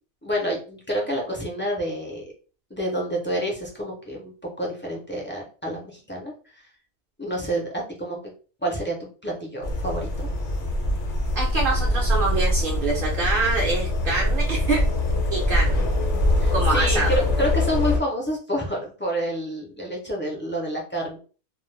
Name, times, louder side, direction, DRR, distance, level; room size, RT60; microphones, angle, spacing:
voice 1, 0.2-2.2 2.7-6.3 7.2-8.2 8.6-9.0 9.2-10.3 16.4-21.2, equal, 20° left, -2 dB, 0.3 m, -28 dB
sound 1, 9.6-18.0, left 1 dB, 55° left, 0.7 m, -23 dB
voice 2, 11.4-14.8 15.3-15.8 16.5-17.2, right 3 dB, 55° right, -1 dB, 0.7 m, -25 dB
2.3 x 2.1 x 3.1 m, 0.37 s
omnidirectional pair, 1.2 m